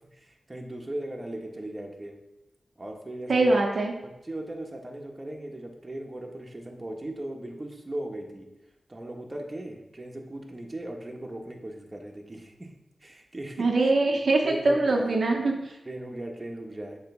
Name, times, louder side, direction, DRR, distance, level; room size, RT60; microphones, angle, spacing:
voice 1, 0.1-2.2 2.8-3.6 4.0-8.5 8.9-12.7 13.0-13.9 14.4-15.4 15.8-17.0, right 1 dB, 30° right, 1 dB, 1.3 m, -38 dB
voice 2, 3.3-3.9 13.6-15.7, right 2 dB, 70° right, 0 dB, 0.9 m, -23 dB
7.5 x 3.3 x 6.1 m, 0.93 s
cardioid pair, 60°, 0 cm